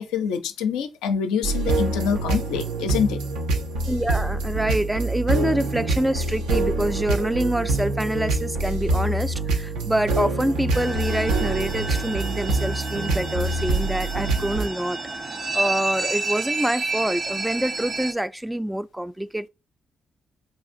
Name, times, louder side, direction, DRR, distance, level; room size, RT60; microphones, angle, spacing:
voice 1, 0.0-3.2, left 7 dB, 80° left, 0.4 m, -25 dB
sound 1, 1.4-14.7, right 2 dB, 80° right, 0.4 m, -25 dB
voice 2, 3.9-15.0 15.2-19.5, right 1 dB, 10° right, 0.3 m, -26 dB
sound 2, 10.7-18.1, right 3 dB, 55° right, 0.9 m, -30 dB
4.8 x 2.4 x 2.5 m
hypercardioid pair, 45°, 0 cm